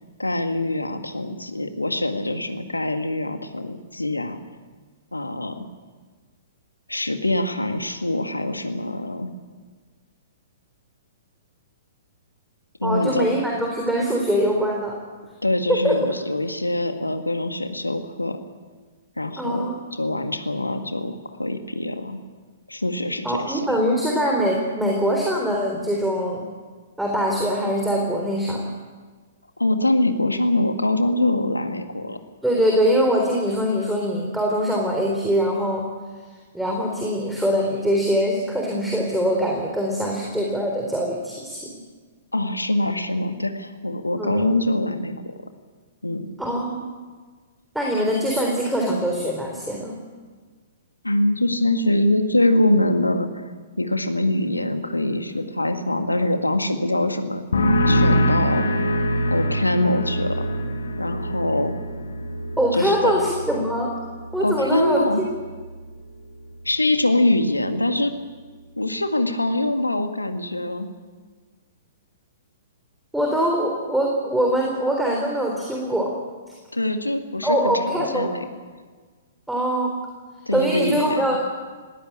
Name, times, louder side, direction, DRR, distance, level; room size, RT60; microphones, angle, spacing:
voice 1, 0.2-4.4 5.1-5.7 6.9-9.3 12.8-13.3 15.4-18.4 19.2-19.7 20.0-22.2 22.7-23.8 29.6-32.2 42.3-45.4 46.0-46.3 51.0-53.5 53.8-57.4 57.9-58.7 59.3-60.4 61.0-61.8 62.7-63.1 64.4-65.2 66.7-68.1 68.8-70.9 76.7-78.4 80.5-81.4, left 1 dB, 85° left, 7 dB, 1.9 m, -24 dB
voice 2, 12.8-14.9 15.7-16.0 19.4-19.7 23.2-26.4 27.0-28.6 32.4-35.9 36.5-41.7 44.2-44.5 46.4-46.9 47.7-50.0 62.6-63.9 64.3-65.4 73.1-76.1 76.5-76.6 77.4-78.3 79.5-79.9 80.5-81.4, equal, 5° right, -1 dB, 3.7 m, -23 dB
sound 1, 57.5-65.0 65.3-65.8, equal, 70° left, 2.6 m, -24 dB
20.5 x 17.0 x 8.7 m, 1.5 s
figure-of-eight pair, 115°, 0 cm